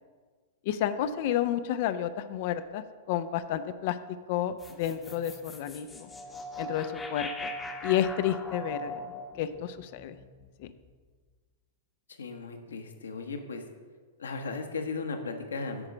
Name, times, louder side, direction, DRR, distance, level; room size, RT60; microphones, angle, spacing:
voice 1, 0.7-4.0 4.3-6.1 6.6-7.5 7.8-9.0 9.4-10.1 10.6-10.7, left 10 dB, 50° left, 11 dB, 0.5 m, -30 dB
sound 1, 4.6-10.9, left 1 dB, 15° left, 0.9 m, -40 dB
voice 2, 12.1-13.6 14.2-15.9, left 4 dB, 75° left, 5 dB, 1.1 m, -36 dB
9.8 x 4.9 x 6.4 m, 1.5 s
figure-of-eight pair, 100°, 0 cm